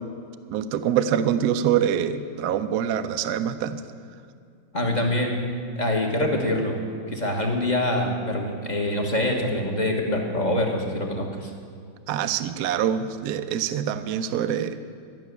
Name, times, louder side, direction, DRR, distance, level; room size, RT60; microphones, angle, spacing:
voice 1, 0.5-3.8 12.1-14.8, right 9 dB, 75° right, 10 dB, 0.9 m, -25 dB
voice 2, 4.7-5.4 5.8-6.8 7.1-11.5, left 1 dB, 25° left, 1 dB, 1.1 m, -25 dB
12.5 x 6.3 x 9.3 m, 2.3 s
omnidirectional pair, 2.2 m